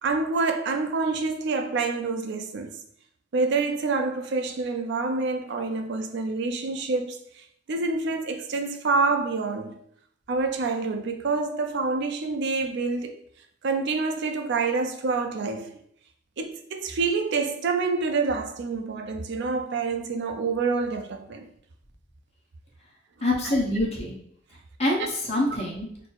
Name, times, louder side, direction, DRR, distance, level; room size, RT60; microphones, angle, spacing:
voice 1, 0.0-2.7 3.3-7.2 7.7-9.7 10.3-13.2 13.6-15.7 16.4-21.5 23.4-23.5, right 4 dB, 65° right, 0.4 m, -27 dB
voice 2, 23.2-24.2 24.8-25.9, left 1 dB, 35° left, 1.1 m, -25 dB
4.1 x 2.1 x 4.5 m
head